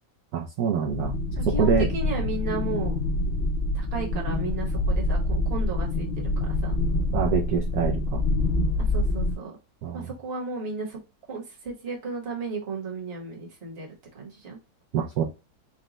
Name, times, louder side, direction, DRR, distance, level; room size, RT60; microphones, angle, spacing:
voice 1, 0.3-1.1 1.6-1.9 7.1-8.2 9.8-10.1 14.9-15.2, right 7 dB, 70° right, -1 dB, 1.0 m, -25 dB
sound 1, 0.9-9.4, left 2 dB, 55° left, 0.7 m, -26 dB
voice 2, 1.5-2.9 3.7-6.1 6.4-6.7 8.8-9.6 9.9-11.0 11.3-13.9 14.1-14.6, right 3 dB, 40° right, -1 dB, 1.3 m, -34 dB
4.1 x 2.2 x 3.8 m, 0.28 s
omnidirectional pair, 1.9 m